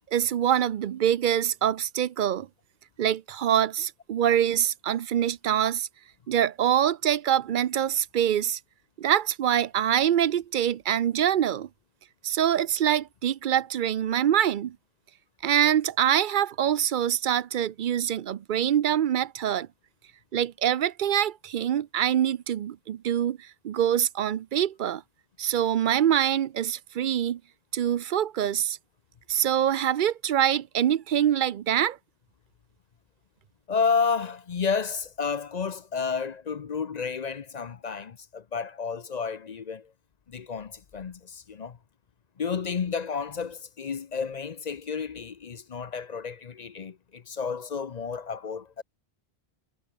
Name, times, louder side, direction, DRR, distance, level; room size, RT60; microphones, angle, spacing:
voice 1, 0.1-2.5 3.0-5.9 6.3-8.6 9.0-11.7 12.2-14.8 15.4-19.7 20.3-25.0 25.4-27.4 27.7-28.8 29.3-32.0, right 10 dB, 60° right, 0.7 m, -25 dB
voice 2, 33.7-39.9 40.3-41.8 42.4-48.8, left 5 dB, 45° left, 0.7 m, -31 dB
omnidirectional pair, 1.1 m